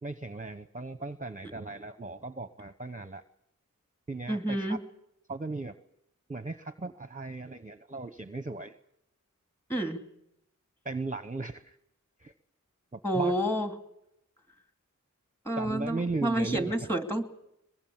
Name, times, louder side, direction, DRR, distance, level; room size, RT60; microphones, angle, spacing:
voice 1, 0.0-3.2 4.1-4.8 5.3-5.7 6.3-8.8 10.8-11.8 12.2-12.3 12.9-13.3 15.6-16.9, right 3 dB, 25° right, 10 dB, 0.9 m, -37 dB
voice 2, 4.3-4.8 9.7-10.0 13.0-13.7 15.5-17.2, right 1 dB, 5° left, 6 dB, 2.6 m, -29 dB
23.0 x 21.5 x 7.3 m, 0.81 s
wide cardioid pair, 55°, 31 cm